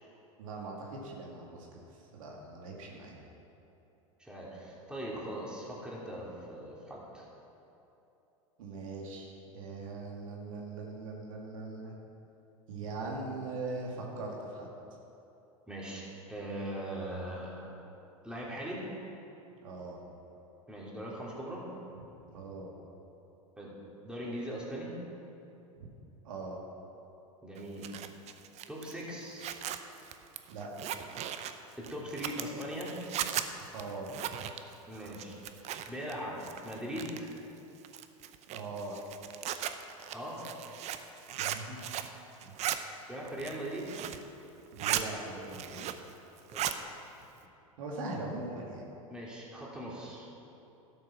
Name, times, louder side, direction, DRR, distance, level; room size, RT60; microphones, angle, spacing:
voice 1, 0.4-1.8 2.1-3.2 8.6-11.9 12.7-14.7 19.6-20.0 22.3-22.7 26.2-26.6 30.5-30.7 33.7-34.1 38.5-39.0 41.3-41.8 44.7-45.8 47.8-48.8, right 3 dB, 70° right, -2 dB, 2.3 m, -40 dB
voice 2, 4.2-7.2 15.7-16.0 16.3-17.7 18.2-18.9 20.7-21.7 23.6-23.8 24.0-25.0 27.4-28.0 28.7-29.5 31.8-33.0 34.9-35.5 35.9-37.4 40.1-40.5 43.1-43.9 46.5-46.7 49.1-50.3, equal, 5° right, -5 dB, 3.1 m, -40 dB
Zipper (clothing), 27.6-36.1 36.4-37.4 37.8-42.2 42.4-42.8 43.2-44.3 44.6-45.1 45.4-46.1 46.4-46.8, right 11 dB, 40° right, 0.7 m, -37 dB
12.0 x 8.3 x 5.9 m, 3.0 s
hypercardioid pair, 95°, 18 cm